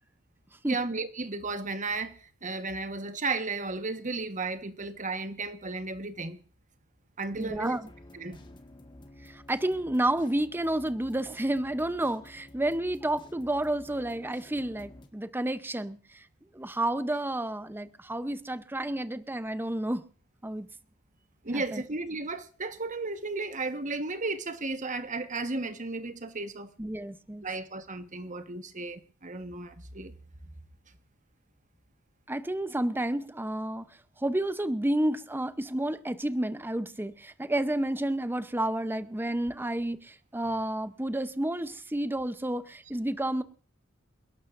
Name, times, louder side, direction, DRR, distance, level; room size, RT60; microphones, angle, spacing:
voice 1, 0.6-6.4 7.2-7.8 8.1-8.4 21.4-26.7 27.4-30.1, right 3 dB, 35° right, 1.3 m, -34 dB
sound 1, 7.3-15.1, left 1 dB, 20° left, 1.7 m, -52 dB
voice 2, 7.4-7.8 9.2-16.3 16.5-20.0 20.4-20.7 21.5-21.8 26.8-27.4 32.3-33.9 34.2-43.4, right 1 dB, 10° right, 0.7 m, -30 dB
28.5 x 12.0 x 2.6 m
head